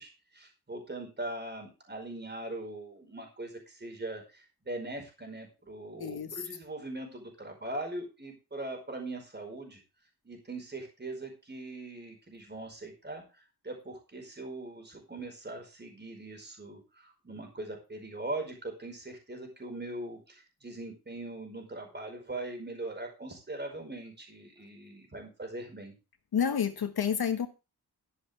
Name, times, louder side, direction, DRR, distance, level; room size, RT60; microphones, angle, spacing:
voice 1, 0.0-9.8 10.2-25.9, right 2 dB, 25° right, 3 dB, 5.1 m, -41 dB
voice 2, 6.0-6.4 26.3-27.5, left 7 dB, 70° left, 7 dB, 1.5 m, -29 dB
13.0 x 11.0 x 3.4 m, 0.30 s
wide cardioid pair, 125°, 38 cm